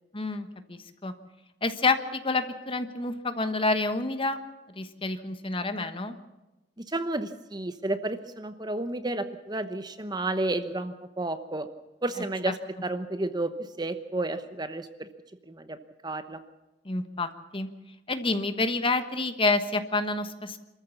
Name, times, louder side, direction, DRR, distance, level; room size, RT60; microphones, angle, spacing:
voice 1, 0.1-1.1 1.6-4.4 4.8-6.1 12.5-12.6 16.8-17.7 18.1-20.6, left 3 dB, 30° left, 9 dB, 1.2 m, -28 dB
voice 2, 6.9-11.7 12.0-12.5 12.8-13.5 13.8-15.1 15.5-15.8 16.0-16.4, right 2 dB, 25° right, 10 dB, 1.0 m, -31 dB
26.0 x 14.0 x 7.1 m, 1.0 s
head